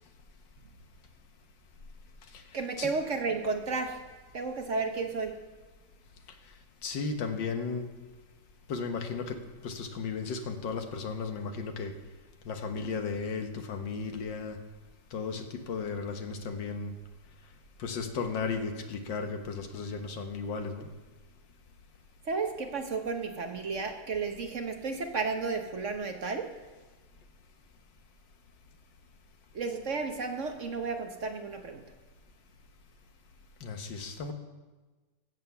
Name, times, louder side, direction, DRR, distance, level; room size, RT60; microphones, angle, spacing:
voice 1, 2.5-4.0 4.3-5.4 22.3-26.5 29.5-31.8, right 4 dB, 50° right, 5 dB, 1.1 m, -33 dB
voice 2, 6.8-7.9 8.7-9.4 9.6-11.9 12.5-14.6 15.1-16.9 17.8-20.9 33.6-34.3, left 5 dB, 85° left, 6 dB, 1.9 m, -35 dB
15.5 x 6.8 x 6.9 m, 1.3 s
omnidirectional pair, 1.9 m